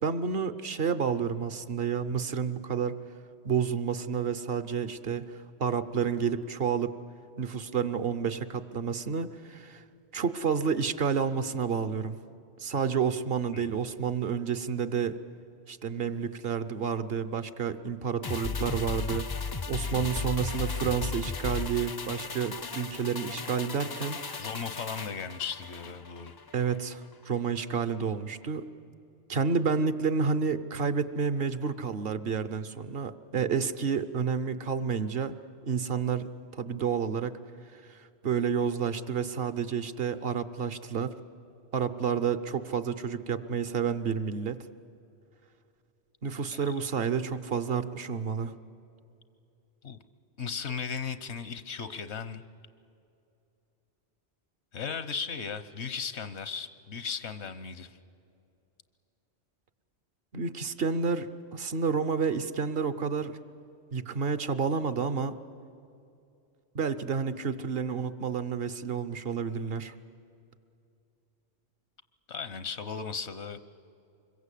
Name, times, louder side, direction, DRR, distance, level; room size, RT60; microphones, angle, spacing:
voice 1, 0.0-3.0 3.4-6.9 7.4-9.8 10.1-12.2 12.6-15.2 15.7-19.3 19.7-24.4 26.5-28.7 29.3-35.3 35.6-37.4 37.7-41.1 41.7-44.6 46.2-48.5 60.3-63.4 63.9-65.4 66.7-69.9, right 6 dB, 60° right, 13 dB, 1.0 m, -30 dB
sound 1, 18.2-26.8 27.1-27.2, left 4 dB, 35° left, 0.4 m, -36 dB
voice 2, 24.4-26.3 46.5-46.7 49.8-50.0 50.4-52.4 54.7-58.0 72.3-73.6, left 6 dB, 80° left, 12 dB, 1.2 m, -36 dB
25.5 x 22.0 x 8.3 m, 2.6 s
omnidirectional pair, 1.1 m